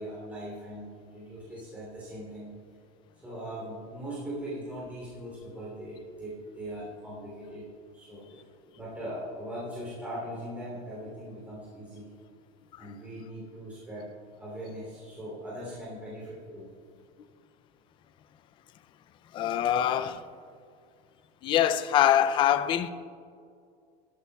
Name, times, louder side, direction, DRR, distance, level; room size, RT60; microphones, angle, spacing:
voice 1, 0.0-2.5 3.2-7.7 7.9-12.1 12.8-14.1 14.4-16.7, equal, 10° right, 3.1 m, -40 dB
voice 2, 19.3-20.2 21.4-22.9, left 10 dB, 25° left, 0.4 m, -24 dB
18.0 x 13.0 x 2.3 m
cardioid pair, 180°, 18 cm